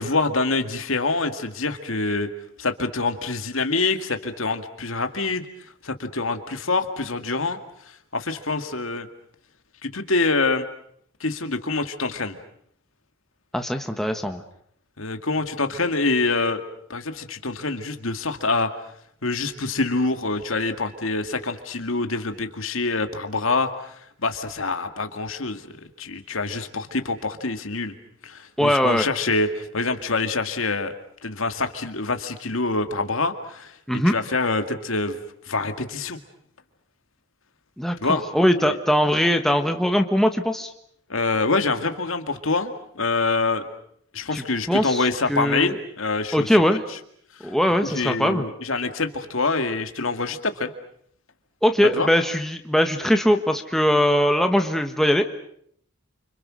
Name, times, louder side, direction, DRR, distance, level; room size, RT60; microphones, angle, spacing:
voice 1, 0.0-2.3 2.6-5.5 5.8-7.6 8.1-9.1 9.8-10.7 11.2-12.4 15.0-18.7 19.2-23.9 24.2-27.9 28.2-30.9 31.2-33.7 34.0-35.2 35.5-36.2 38.0-38.2 38.6-38.8 41.1-43.7 44.1-46.8 47.4-47.5 47.8-50.7 51.9-52.1, left 3 dB, 75° left, 7 dB, 2.2 m, -25 dB
voice 2, 13.5-14.4 28.6-29.1 33.9-34.1 37.8-40.7 44.3-45.8 46.3-46.8 47.4-48.5 51.6-55.2, equal, ahead, 5 dB, 1.4 m, -21 dB
29.5 x 26.5 x 6.4 m, 0.67 s
head